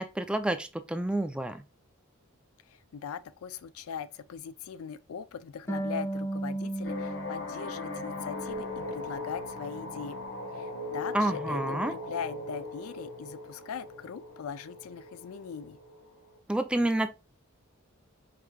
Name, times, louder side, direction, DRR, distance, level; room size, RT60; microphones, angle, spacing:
voice 1, 0.0-1.6 11.1-11.9 16.5-17.1, right 1 dB, 5° right, 0.3 m, -29 dB
voice 2, 2.7-10.2 10.5-15.8, left 7 dB, 85° left, 0.4 m, -40 dB
Harp, 5.7-9.1 9.4-10.5, right 1 dB, 15° left, 0.8 m, -37 dB
sound 1, 6.8-16.4, left 2 dB, 55° left, 0.9 m, -39 dB
4.8 x 3.4 x 2.2 m
head